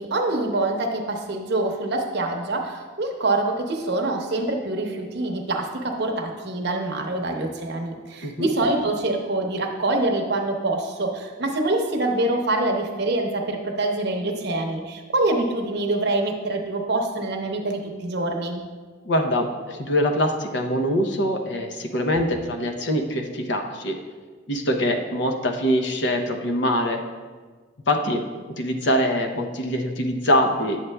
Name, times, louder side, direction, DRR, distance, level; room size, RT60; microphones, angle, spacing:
voice 1, 0.0-18.6, right 2 dB, 55° right, 2 dB, 0.8 m, -25 dB
voice 2, 19.0-24.0 24.5-27.0 27.9-28.2 28.5-30.8, equal, 60° left, 4 dB, 0.7 m, -23 dB
9.4 x 7.3 x 2.2 m, 1.5 s
head